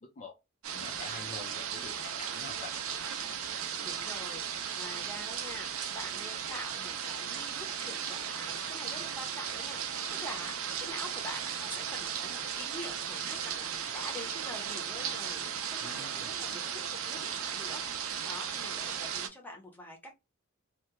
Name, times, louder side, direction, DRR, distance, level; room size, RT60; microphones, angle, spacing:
sound 1, 0.6-19.3, right 8 dB, 85° right, 0.5 m, -36 dB
voice 1, 0.7-1.9 2.2-2.8 15.8-16.2, left 4 dB, 35° left, 0.4 m, -46 dB
voice 2, 3.8-20.1, left 1 dB, 10° left, 0.7 m, -46 dB
2.3 x 2.1 x 2.9 m
head